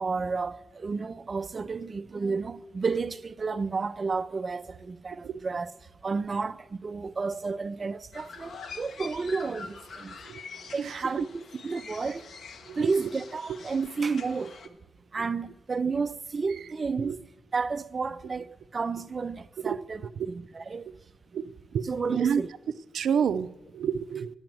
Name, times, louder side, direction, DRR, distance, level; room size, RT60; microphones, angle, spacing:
voice 1, 0.0-5.7 6.0-10.1 10.7-12.2 12.8-14.6 15.1-17.1 17.5-18.5 18.7-20.9 21.8-22.5, right 4 dB, 40° right, 0.4 m, -31 dB
sound 1, 8.1-14.7, left 5 dB, 70° left, 1.1 m, -45 dB
voice 2, 21.7-22.4 22.9-23.5 23.7-24.3, right 7 dB, 85° right, 0.5 m, -28 dB
10.5 x 8.7 x 7.6 m
cardioid pair, 105°, 0 cm